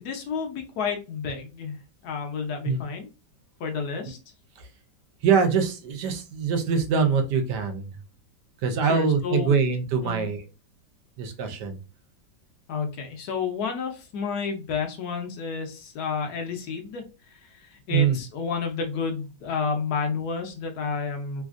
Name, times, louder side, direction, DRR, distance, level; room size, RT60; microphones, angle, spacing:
voice 1, 0.0-1.8 2.0-3.1 3.6-4.2 8.9-9.6 10.0-10.3 12.7-17.0 17.6-21.4, left 5 dB, 65° left, 4 dB, 1.1 m, -30 dB
voice 2, 5.2-7.9 8.6-10.4 11.2-11.8 17.9-18.2, right 6 dB, 70° right, 5 dB, 1.2 m, -23 dB
3.3 x 2.5 x 2.4 m, 0.31 s
omnidirectional pair, 2.0 m